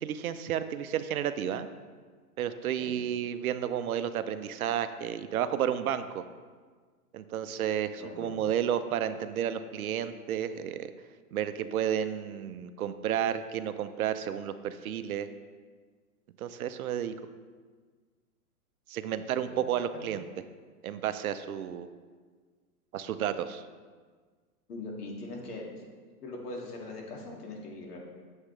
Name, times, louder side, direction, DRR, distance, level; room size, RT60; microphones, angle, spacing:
voice 1, 0.0-1.7 2.4-6.2 7.1-10.9 11.3-15.3 16.4-17.1 18.9-20.2 20.8-21.9 22.9-23.6, right 9 dB, 65° right, 11 dB, 0.7 m, -31 dB
voice 2, 8.0-8.5 19.5-19.6 19.9-20.0 24.7-25.6 26.2-28.0, left 2 dB, 75° left, -1 dB, 2.4 m, -41 dB
9.7 x 7.3 x 3.3 m, 1.5 s
hypercardioid pair, 135°, 46 cm